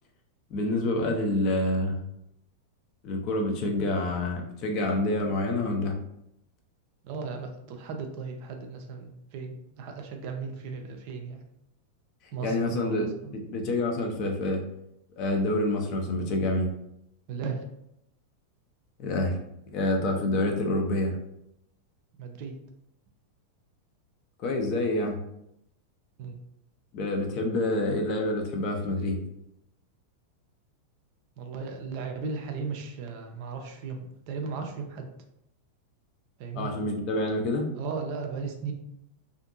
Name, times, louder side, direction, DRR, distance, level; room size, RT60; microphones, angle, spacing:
voice 1, 0.5-2.0 3.0-6.0 12.4-14.6 15.2-16.7 19.0-19.4 19.7-21.2 24.4-25.2 26.9-29.2 36.5-37.7, left 2 dB, 40° left, 2 dB, 0.5 m, -27 dB
voice 2, 7.0-11.4 12.3-13.4 17.3-17.6 22.2-22.6 26.2-26.4 31.4-34.0 34.3-35.1 36.4-36.7 37.7-38.7, right 5 dB, 45° right, 4 dB, 0.4 m, -36 dB
2.5 x 2.4 x 2.6 m, 0.80 s
figure-of-eight pair, 90°, 0 cm